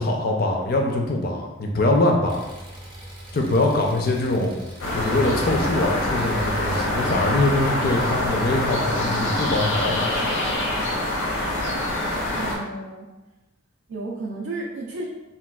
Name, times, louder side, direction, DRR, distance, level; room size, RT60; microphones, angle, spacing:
voice 1, 0.0-2.4 3.3-4.5 4.9-10.2, left 2 dB, 45° left, 1 dB, 0.4 m, -23 dB
Engine, 2.3-8.7, right 1 dB, 25° right, 0.7 m, -42 dB
sound 1, 4.8-12.5, left 1 dB, 80° left, 0.7 m, -25 dB
voice 2, 12.3-13.1 13.9-15.1, right 2 dB, 75° right, -2 dB, 0.4 m, -32 dB
4.1 x 2.2 x 2.2 m, 1.1 s
head